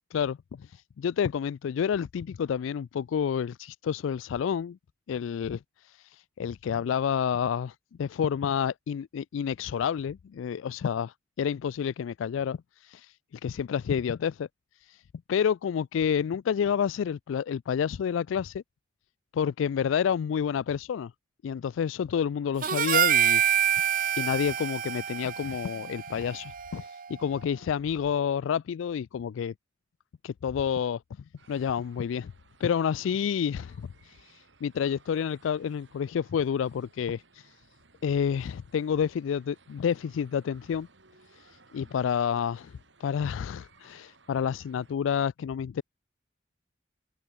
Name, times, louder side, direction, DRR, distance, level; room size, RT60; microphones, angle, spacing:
voice 1, 0.7-4.8 5.1-5.6 5.8-13.1 13.4-14.5 14.8-15.0 15.3-18.6 19.3-21.1 21.4-23.9 24.2-26.9 27.2-29.5 30.2-31.0 31.5-32.3 32.6-37.5 38.0-40.9 41.4-41.5 41.7-42.7 43.0-45.8, left 7 dB, 85° left, 0.3 m, -29 dB
Harmonica, 22.6-27.1, right 10 dB, 45° right, 0.7 m, -27 dB
sound 1, 31.4-45.0, right 3 dB, 70° right, 4.2 m, -60 dB
open air
head